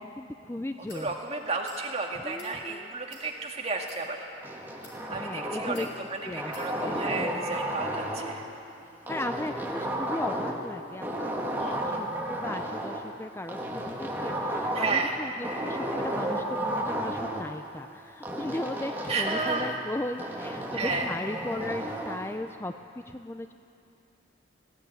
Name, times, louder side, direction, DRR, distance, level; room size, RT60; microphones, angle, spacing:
voice 1, 0.0-1.1 2.2-2.9 5.1-5.9 6.2-6.5 6.8-7.0 9.1-22.7 23.1-23.5, left 1 dB, 15° left, 7 dB, 0.4 m, -37 dB
sound 1, 0.9-1.1 1.6-1.8 2.2-2.5 3.1-3.3 3.8-4.0 4.7-5.0 5.7-5.9 6.5-6.7, left 3 dB, 70° left, 4.9 m, -49 dB
voice 2, 0.9-4.2 5.1-8.4 8.8-9.0 11.6-11.8 14.7-15.1 19.1-19.7 20.7-21.1, right 4 dB, 35° right, 0 dB, 2.1 m, -32 dB
sound 2, 4.4-6.0 6.4-8.4 9.1-10.7 11.0-13.0 13.5-15.1 15.4-17.4 18.2-19.8 20.2-22.2, right 1 dB, 10° right, 1.8 m, -33 dB
20.0 x 16.0 x 9.2 m, 2.6 s
head